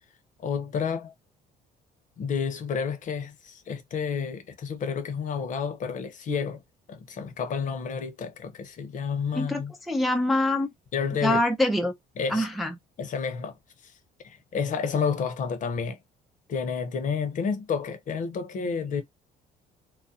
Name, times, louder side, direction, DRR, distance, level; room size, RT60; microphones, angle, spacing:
voice 1, 0.4-1.1 2.2-6.6 6.9-9.7 10.9-11.4 12.2-12.5 13.0-13.5 13.8-13.9 14.2-16.0 16.5-19.0, left 6 dB, 50° left, 0.7 m, -30 dB
voice 2, 9.3-10.7 11.2-11.9 12.3-12.7, left 1 dB, ahead, 0.4 m, -25 dB
2.4 x 2.0 x 2.6 m
cardioid pair, 110°, 17 cm